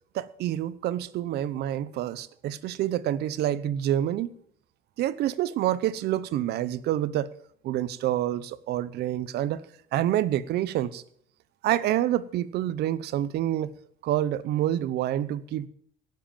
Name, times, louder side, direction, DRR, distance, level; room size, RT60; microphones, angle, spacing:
voice 1, 0.1-4.3 5.0-7.3 7.6-9.6 9.9-11.0 11.6-13.7 14.0-15.7, right 12 dB, 75° right, 16 dB, 0.9 m, -27 dB
18.0 x 7.8 x 7.3 m, 0.64 s
cardioid pair, 110°, 17 cm